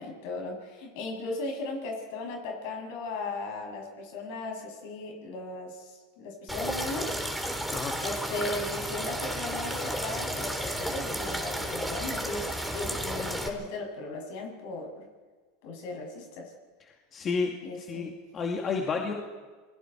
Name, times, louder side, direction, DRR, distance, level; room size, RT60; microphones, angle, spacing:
voice 1, 0.0-7.1 8.0-15.1 15.6-16.5 17.6-18.1 18.9-19.2, left 3 dB, 65° left, 1 dB, 7.9 m, -37 dB
sound 1, 6.5-13.5, equal, ahead, 3.4 m, -32 dB
voice 2, 17.1-19.1, left 4 dB, 30° left, 2 dB, 2.3 m, -31 dB
28.5 x 21.0 x 4.7 m, 1.4 s
hypercardioid pair, 105°, 0 cm